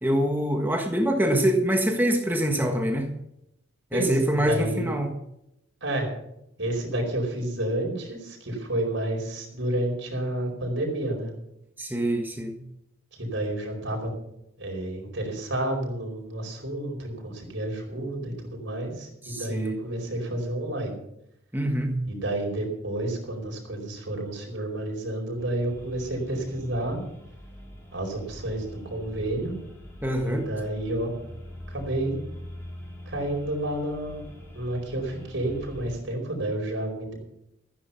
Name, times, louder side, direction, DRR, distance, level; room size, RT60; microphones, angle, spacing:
voice 1, 0.0-3.1 3.9-5.1 11.8-12.6 19.2-19.7 21.5-22.0 30.0-30.4, equal, 10° right, 3 dB, 1.6 m, -25 dB
voice 2, 3.9-4.9 5.8-6.1 6.6-11.3 13.2-14.1 14.6-21.0 22.1-27.0 27.9-29.5 30.2-31.1 31.7-32.2 33.1-34.2 34.5-37.1, right 1 dB, 65° right, 1 dB, 4.9 m, -30 dB
sound 1, 25.4-36.0, equal, 10° left, 3.4 m, -43 dB
15.0 x 9.9 x 5.7 m, 0.81 s
head